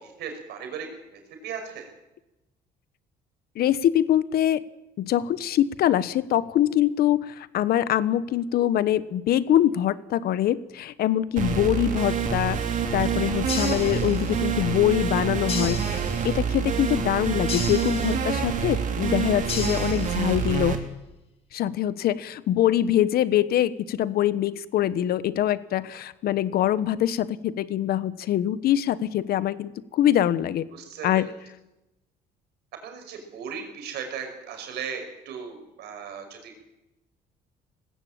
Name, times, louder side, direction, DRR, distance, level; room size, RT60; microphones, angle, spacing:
voice 1, 0.0-1.9 30.7-31.3 32.8-36.6, right 6 dB, 75° right, 5 dB, 5.5 m, -37 dB
voice 2, 3.6-4.6 5.0-12.6 12.9-20.8 21.5-30.6 31.0-31.3, left 11 dB, 65° left, 16 dB, 1.1 m, -24 dB
sound 1, 11.4-20.8, right 7 dB, 50° right, 3.3 m, -27 dB
sound 2, 13.5-14.5 15.5-16.5 17.5-18.5 19.5-20.5, left 5 dB, 35° left, 3.5 m, -35 dB
19.5 x 15.5 x 8.8 m, 0.94 s
cardioid pair, 110°, 17 cm